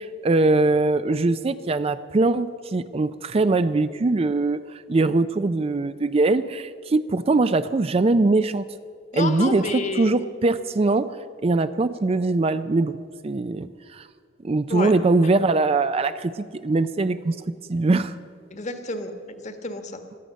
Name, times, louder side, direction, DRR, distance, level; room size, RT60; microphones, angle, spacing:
voice 1, 0.0-8.6 9.1-9.7 10.0-11.2 11.4-13.0 13.2-14.1 14.4-17.4 17.7-18.2, right 3 dB, 30° right, 12 dB, 0.4 m, -22 dB
voice 2, 9.1-10.1 14.7-14.9 18.5-19.1 19.4-20.0, left 2 dB, 40° left, 8 dB, 1.3 m, -29 dB
17.0 x 12.0 x 6.4 m, 2.1 s
head